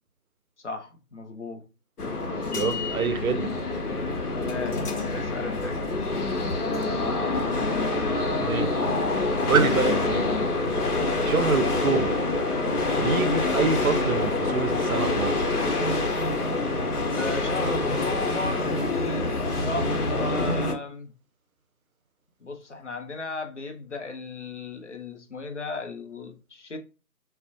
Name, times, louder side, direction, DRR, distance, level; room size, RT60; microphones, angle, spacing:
voice 1, 0.6-1.6 4.4-6.0 17.2-21.1 22.4-26.8, left 3 dB, 55° left, 0.5 m, -35 dB
sound 1, 2.0-20.7, left 2 dB, 85° left, 0.8 m, -26 dB
voice 2, 2.5-3.6 8.4-8.9 9.5-10.4 11.2-12.3 12.9-15.7, right 5 dB, 70° right, 0.5 m, -26 dB
2.4 x 2.0 x 2.6 m
figure-of-eight pair, 160°, 44 cm